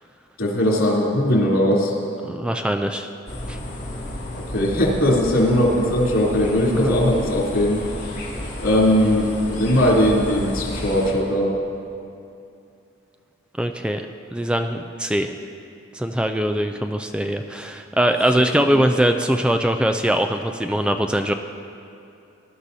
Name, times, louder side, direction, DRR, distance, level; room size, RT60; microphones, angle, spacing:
voice 1, 0.4-1.9 4.5-7.8 8.6-11.5 18.3-18.8, equal, 90° left, -5 dB, 3.2 m, -19 dB
voice 2, 2.2-3.1 3.5-3.6 6.8-7.0 13.6-14.1 14.3-15.3 15.9-21.3, right 1 dB, 5° right, 5 dB, 0.3 m, -22 dB
sound 1, 3.3-11.1, left 1 dB, 40° left, 2.6 m, -32 dB
19.0 x 11.5 x 2.8 m, 2.6 s
head